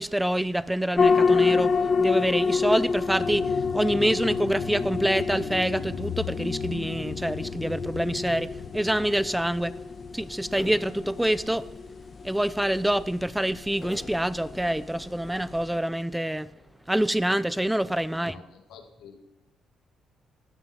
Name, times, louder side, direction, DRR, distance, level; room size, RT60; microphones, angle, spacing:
voice 1, 0.0-1.7 2.0-9.7 10.1-11.7 12.2-16.5 16.9-18.3, right 1 dB, 5° right, 0.6 m, -26 dB
sound 1, 1.0-15.8, left 5 dB, 50° left, 1.3 m, -28 dB
sound 2, 2.2-11.2 11.6-11.7, left 7 dB, 70° left, 1.4 m, -38 dB
sound 3, 10.5-12.0 12.4-13.1 13.8-17.1, left 2 dB, 20° left, 3.0 m, -48 dB
voice 2, 18.1-19.2, left 7 dB, 85° left, 2.1 m, -49 dB
17.0 x 12.5 x 4.5 m
cardioid pair, 90°, 0 cm